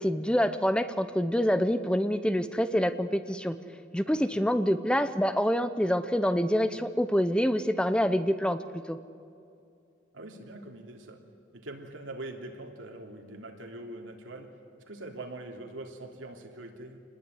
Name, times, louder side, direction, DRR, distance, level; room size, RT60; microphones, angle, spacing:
voice 1, 0.0-3.6 3.9-9.0, equal, 5° left, 11 dB, 0.8 m, -26 dB
voice 2, 4.1-4.4 10.1-11.2 11.5-14.5 14.9-17.0, right 2 dB, 85° right, 3 dB, 3.2 m, -43 dB
26.5 x 20.0 x 9.8 m, 2.5 s
head